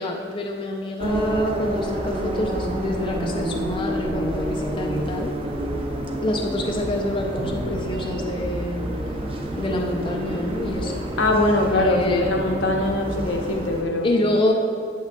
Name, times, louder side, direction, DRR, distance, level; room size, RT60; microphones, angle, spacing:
voice 1, 0.0-5.3 6.1-8.8 9.6-10.9 11.6-12.3 14.0-14.5, left 1 dB, 30° left, 0 dB, 0.5 m, -26 dB
sound 1, 1.0-13.8, right 1 dB, 30° right, 0.6 m, -29 dB
voice 2, 11.2-14.2, left 2 dB, 75° left, 1 dB, 0.9 m, -22 dB
8.3 x 7.8 x 2.3 m, 2.4 s
head